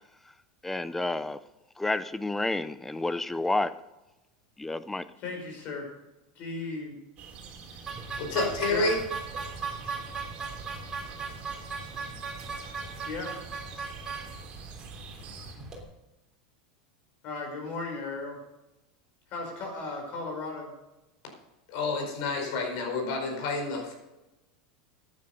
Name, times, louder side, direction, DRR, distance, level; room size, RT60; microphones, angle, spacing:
voice 1, 0.6-1.4 1.8-3.7 4.6-5.0, left 2 dB, 5° left, 0.5 m, -30 dB
voice 2, 5.2-5.9 6.4-7.0 8.7-8.9 13.1-13.3 17.2-18.4 19.3-20.7, left 3 dB, 45° left, 5.4 m, -36 dB
sound 1, 7.2-15.5, right 5 dB, 35° right, 3.3 m, -47 dB
sound 2, 7.9-15.8, right 4 dB, 15° right, 3.5 m, -38 dB
voice 3, 8.2-9.0 21.7-23.9, left 3 dB, 60° left, 4.9 m, -29 dB
14.0 x 9.8 x 5.3 m
supercardioid pair, 145°, 4 cm